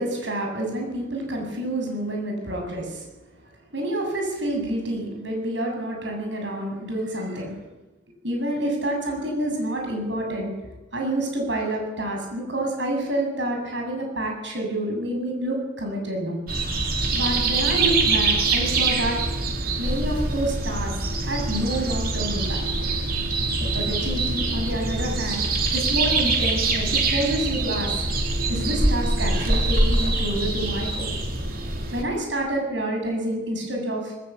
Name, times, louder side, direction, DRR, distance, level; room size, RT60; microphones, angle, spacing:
voice 1, 0.0-3.1 3.7-7.5 8.2-10.5 10.9-16.4 17.1-19.2 19.8-20.9 21.2-22.6 23.7-25.5 25.7-27.9 28.5-31.2 31.9-34.1, right 1 dB, 70° right, 2 dB, 7.9 m, -28 dB
sound 1, 16.5-32.0, right 3 dB, 50° right, 3.5 m, -24 dB
20.0 x 19.5 x 8.6 m, 1.1 s
head